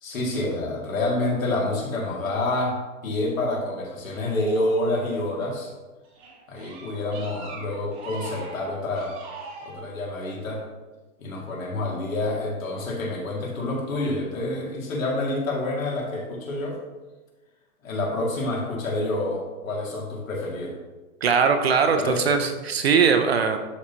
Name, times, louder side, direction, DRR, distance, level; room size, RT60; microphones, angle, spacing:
voice 1, 0.0-5.7 6.5-9.1 9.6-10.6 11.2-16.8 17.8-20.8 21.8-22.4, left 2 dB, 60° left, -2 dB, 2.3 m, -28 dB
sound 1, 4.1-5.5 6.0-9.8, right 3 dB, 10° right, 0.9 m, -42 dB
voice 2, 21.2-23.6, right 6 dB, 45° right, 6 dB, 0.5 m, -20 dB
11.0 x 4.2 x 2.8 m, 1.2 s
hypercardioid pair, 150°, 45 cm